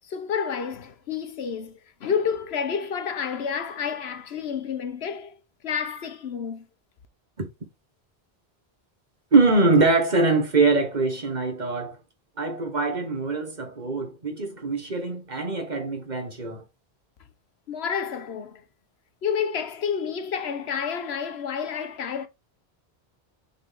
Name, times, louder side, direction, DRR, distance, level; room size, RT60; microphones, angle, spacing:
voice 1, 0.0-5.4 5.6-6.7 17.7-18.6 19.2-22.3, left 7 dB, 75° left, 1.2 m, -29 dB
voice 2, 9.3-12.0 12.4-16.6, right 3 dB, 45° right, 1.8 m, -23 dB
6.7 x 4.3 x 3.6 m
omnidirectional pair, 1.1 m